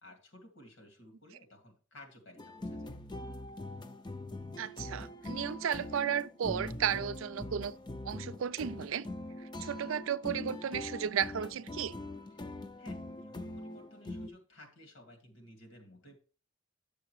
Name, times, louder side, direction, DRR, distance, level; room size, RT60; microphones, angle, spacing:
voice 1, 0.0-3.0 12.8-16.2, left 1 dB, 80° left, 2.2 m, -55 dB
sound 1, 2.4-14.3, left 1 dB, 20° left, 0.5 m, -42 dB
voice 2, 4.6-7.7 8.0-9.1 9.6-11.9, right 8 dB, 85° right, 0.4 m, -34 dB
9.0 x 6.7 x 3.1 m
head